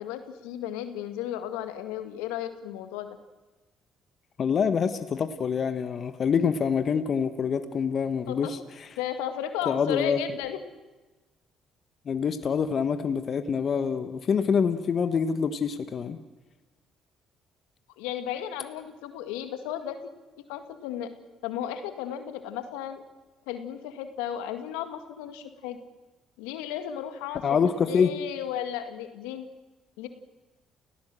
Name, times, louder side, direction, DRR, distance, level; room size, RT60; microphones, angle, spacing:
voice 1, 0.0-3.1 8.3-8.5 9.0-10.6 18.0-20.0 20.5-21.1 21.4-23.0 23.5-25.8 26.4-29.5 30.0-30.1, left 10 dB, 85° left, 8 dB, 1.9 m, -34 dB
voice 2, 4.4-8.6 9.7-10.2 12.1-16.2 27.4-28.1, left 6 dB, 50° left, 10 dB, 1.3 m, -26 dB
29.5 x 17.0 x 7.7 m, 1.2 s
hypercardioid pair, 55°, 0 cm